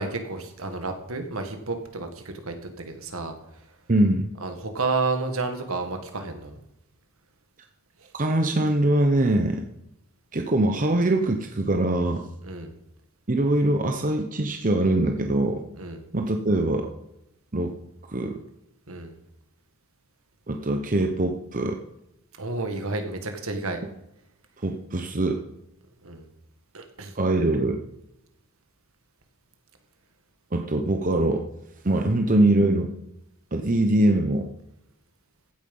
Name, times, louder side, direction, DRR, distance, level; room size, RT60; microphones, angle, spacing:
voice 1, 0.0-2.5 2.8-3.3 4.4-6.6 8.0-8.1 12.4-12.7 15.8-16.0 18.9-19.1 22.4-23.8 26.0-26.3 26.7-27.1, right 3 dB, 75° right, 5 dB, 2.0 m, -31 dB
voice 2, 3.9-4.3 8.1-9.6 10.3-12.2 13.3-15.6 16.1-16.9 17.5-17.7 18.1-18.4 20.5-21.8 24.6-25.4 27.2-27.8 30.5-31.5 31.8-32.9 33.5-34.5, right 1 dB, 35° right, 4 dB, 0.9 m, -23 dB
15.5 x 9.0 x 5.6 m, 0.84 s
head